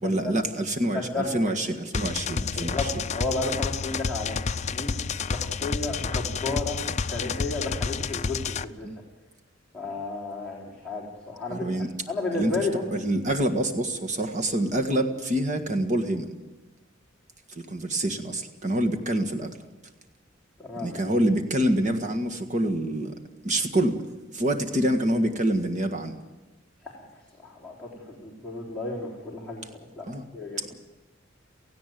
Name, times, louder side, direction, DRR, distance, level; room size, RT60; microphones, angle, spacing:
voice 1, 0.0-3.0 8.8-9.0 11.5-11.9 12.3-16.3 17.5-19.6 20.8-23.1 23.4-24.0 24.3-26.2 30.1-30.3 30.6-30.7, right 1 dB, 40° right, 5 dB, 1.8 m, -26 dB
voice 2, 0.9-1.4 2.6-4.4 4.7-6.8 7.1-8.9 9.7-11.7 12.1-12.8 20.6-21.0 26.8-29.6 30.0-30.1 30.3-30.7, left 3 dB, 5° left, -5 dB, 3.8 m, -33 dB
sound 1, 1.9-8.6, left 5 dB, 35° left, 0.6 m, -30 dB
17.5 x 16.0 x 9.2 m, 1.1 s
head